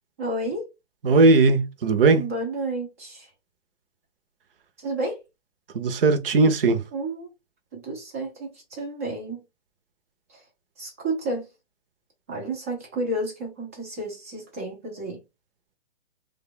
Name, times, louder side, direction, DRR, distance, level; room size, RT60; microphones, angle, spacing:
voice 1, 0.2-0.6 2.2-3.3 4.8-5.2 6.9-7.3 7.7-9.4 10.3-10.4 10.8-11.4 12.3-15.2, right 1 dB, 15° right, 0.5 m, -31 dB
voice 2, 1.0-2.2 5.7-6.8, right 3 dB, 55° right, 0.7 m, -18 dB
3.3 x 2.3 x 3.6 m
hypercardioid pair, 160°, 34 cm